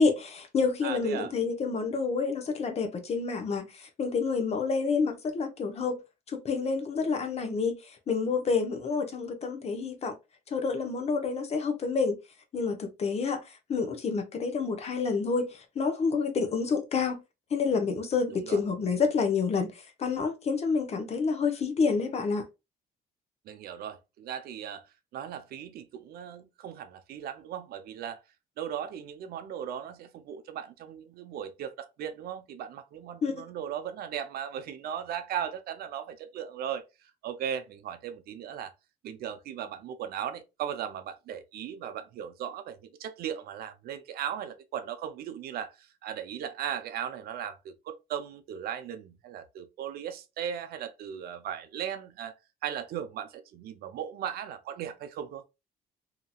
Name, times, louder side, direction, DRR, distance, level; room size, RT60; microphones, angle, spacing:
voice 1, 0.0-3.7 4.0-6.0 6.3-7.8 8.1-10.1 10.5-12.2 12.5-13.4 13.7-15.5 15.8-17.2 17.5-19.7 20.0-22.4 33.2-33.3, left 4 dB, 40° left, 0.7 m, -28 dB
voice 2, 0.8-1.3 18.3-18.6 23.5-24.8 25.1-28.2 28.6-38.7 39.0-52.4 52.6-55.4, right 9 dB, 65° right, 0.5 m, -37 dB
2.8 x 2.7 x 2.3 m
cardioid pair, 110°, 17 cm